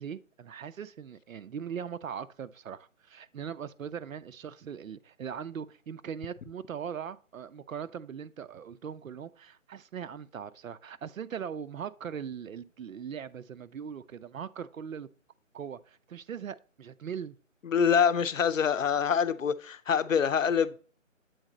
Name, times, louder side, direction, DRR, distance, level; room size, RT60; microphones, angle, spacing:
voice 1, 0.0-15.1 15.5-17.4, right 7 dB, 85° right, 0.6 m, -40 dB
voice 2, 17.6-20.8, left 7 dB, 70° left, 0.6 m, -25 dB
7.9 x 4.0 x 3.8 m
figure-of-eight pair, 175°, 40 cm